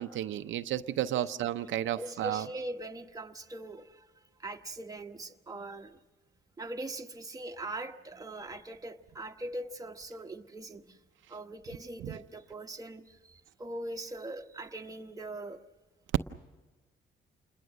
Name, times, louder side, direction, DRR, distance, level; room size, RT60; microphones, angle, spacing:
voice 1, 0.0-2.5 12.0-12.1, right 12 dB, 75° right, 0.7 m, -32 dB
voice 2, 1.9-4.1 4.4-6.0 6.6-11.0 11.3-15.6, right 2 dB, 15° right, 1.1 m, -41 dB
28.0 x 21.0 x 6.4 m
cardioid pair, 90°, 20 cm